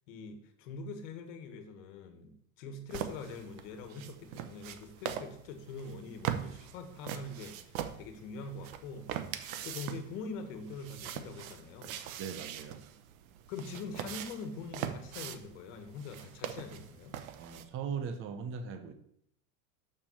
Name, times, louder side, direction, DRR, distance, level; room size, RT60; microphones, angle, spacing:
voice 1, 0.1-2.3 2.6-9.1 9.4-12.0 13.5-17.2, left 4 dB, 65° left, 6 dB, 1.6 m, -44 dB
sound 1, 2.9-17.6, right 10 dB, 75° right, 0.9 m, -42 dB
voice 2, 12.2-12.8 17.4-18.9, right 6 dB, 30° right, 9 dB, 0.7 m, -39 dB
6.9 x 5.9 x 5.5 m, 0.70 s
supercardioid pair, 150°, 42 cm